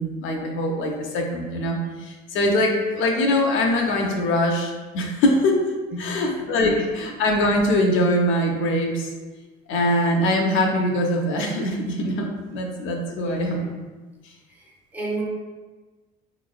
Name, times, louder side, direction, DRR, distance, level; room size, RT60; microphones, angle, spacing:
voice 1, 0.0-5.6 6.0-9.1 9.7-13.6, left 1 dB, 70° left, 1 dB, 0.6 m, -22 dB
voice 2, 5.9-6.7 13.1-13.7 14.5-15.2, right 1 dB, 10° right, -4 dB, 0.9 m, -33 dB
3.9 x 3.1 x 2.3 m, 1.3 s
cardioid pair, 95°, 21 cm